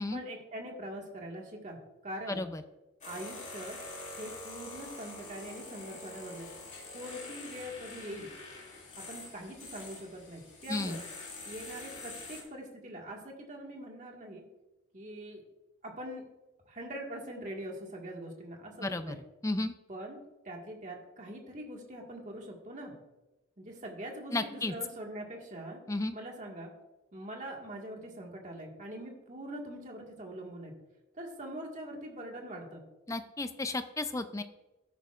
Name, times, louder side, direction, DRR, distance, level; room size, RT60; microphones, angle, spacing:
voice 1, 0.1-2.4 3.0-3.8 4.2-6.5 6.9-8.3 9.0-11.0 11.4-14.4 14.9-15.4 15.8-16.2 16.7-19.2 19.9-20.2 20.4-22.9 23.6-25.8 26.1-26.7 27.1-30.7 31.1-32.8, right 1 dB, 35° right, 0 dB, 1.8 m, -43 dB
voice 2, 2.3-2.6 10.7-11.0 18.8-19.2 19.4-19.7 24.3-24.7 25.9-26.1 33.1-34.4, left 2 dB, 15° left, 10 dB, 0.5 m, -33 dB
sound 1, 3.0-12.4, left 2 dB, 35° left, 2.6 m, -45 dB
13.5 x 10.5 x 2.5 m, 1.0 s
head